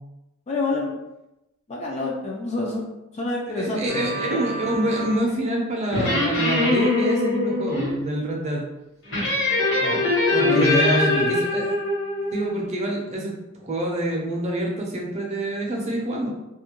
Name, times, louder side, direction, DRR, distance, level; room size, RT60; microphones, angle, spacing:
voice 1, 0.5-1.0 1.7-2.9 3.1-4.1 9.8-10.0 10.4-11.4, left 2 dB, 30° left, -1 dB, 0.3 m, -27 dB
voice 2, 3.6-8.6 10.3-11.7 12.3-13.3 13.6-16.3, right 1 dB, 30° right, -1 dB, 0.5 m, -26 dB
sound 1, 3.9-5.3 5.9-7.9 9.1-12.6, left 2 dB, 60° left, 1.1 m, -23 dB
2.4 x 2.1 x 2.9 m, 0.93 s
head